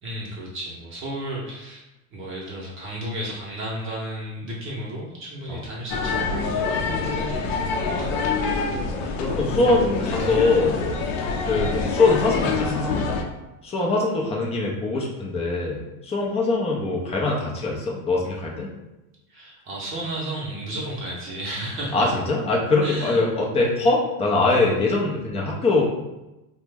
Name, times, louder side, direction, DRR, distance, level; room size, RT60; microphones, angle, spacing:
voice 1, 0.0-1.8 2.1-8.3 19.3-22.1 22.8-23.2, right 1 dB, 30° right, -4 dB, 0.7 m, -33 dB
sound 1, 5.9-13.2, left 4 dB, 65° left, 0.6 m, -26 dB
voice 2, 6.8-7.4 8.8-10.8 11.4-13.1 13.6-18.7 21.9-25.8, left 3 dB, 15° left, -2 dB, 0.4 m, -23 dB
2.9 x 2.1 x 3.4 m, 0.98 s
supercardioid pair, 135°, 42 cm